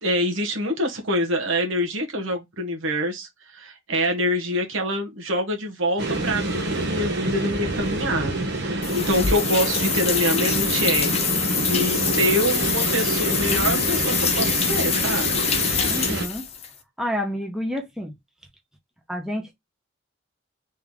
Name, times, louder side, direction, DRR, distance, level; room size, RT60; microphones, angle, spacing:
voice 1, 0.0-11.1 11.6-15.4, equal, 75° right, 1.3 m, -25 dB
sound 1, 6.0-16.3, right 2 dB, 55° right, 1.0 m, -27 dB
sound 2, 8.8-16.7, left 6 dB, 30° left, 0.6 m, -25 dB
voice 2, 15.9-16.5 17.0-18.1 19.1-19.6, equal, ahead, 0.9 m, -29 dB
3.5 x 2.9 x 3.6 m
head